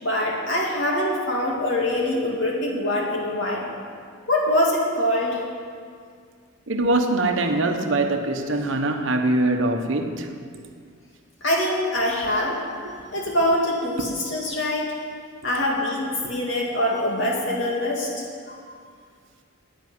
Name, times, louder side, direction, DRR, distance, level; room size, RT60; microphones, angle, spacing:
voice 1, 0.0-3.6 4.3-5.4 11.4-12.6 13.1-14.9 15.4-18.2, left 1 dB, 60° left, -2 dB, 2.6 m, -24 dB
voice 2, 6.7-10.3, right 2 dB, 60° right, 5 dB, 1.1 m, -23 dB
10.5 x 9.0 x 9.7 m, 2.1 s
head